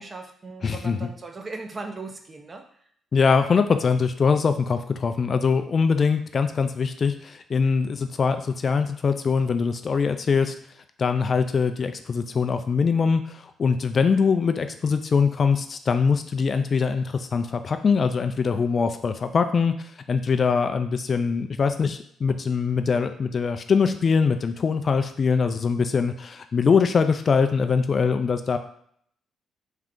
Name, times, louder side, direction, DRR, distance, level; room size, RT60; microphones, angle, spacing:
voice 1, 0.0-2.6, right 3 dB, 30° right, 4 dB, 0.6 m, -38 dB
voice 2, 0.6-1.1 3.1-10.5 11.0-19.7 20.1-28.6, left 5 dB, 45° left, 8 dB, 0.3 m, -22 dB
3.6 x 3.2 x 3.7 m, 0.64 s
cardioid pair, 90°, 0 cm